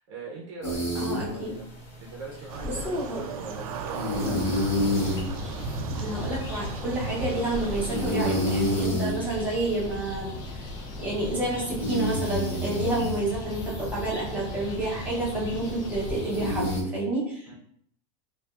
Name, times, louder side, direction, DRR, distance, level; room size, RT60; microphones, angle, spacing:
voice 1, 0.0-1.7 2.0-5.1 17.5-17.6, right 3 dB, 55° right, -2 dB, 0.7 m, -42 dB
sound 1, 0.6-16.8, left 1 dB, 35° left, 1.1 m, -31 dB
voice 2, 0.9-1.6 2.6-3.2 5.9-10.3 11.0-17.4, right 2 dB, 10° right, -6 dB, 0.9 m, -29 dB
sound 2, 2.5-8.9, right 5 dB, 90° right, 0.5 m, -36 dB
sound 3, 4.1-16.8, left 3 dB, 20° left, 0.5 m, -38 dB
4.7 x 2.3 x 2.4 m, 0.68 s
supercardioid pair, 170°, 18 cm